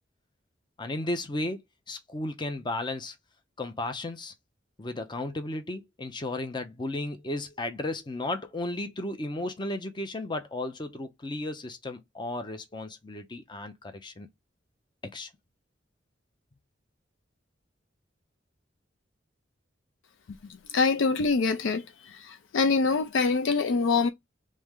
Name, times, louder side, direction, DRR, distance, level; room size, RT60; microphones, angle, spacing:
voice 1, 0.8-1.6 1.9-3.1 3.6-4.3 4.8-14.3 15.1-15.3, left 2 dB, 25° left, 0.6 m, -34 dB
voice 2, 20.7-21.8 22.2-24.1, left 4 dB, 90° left, 0.4 m, -24 dB
3.2 x 3.1 x 3.6 m
head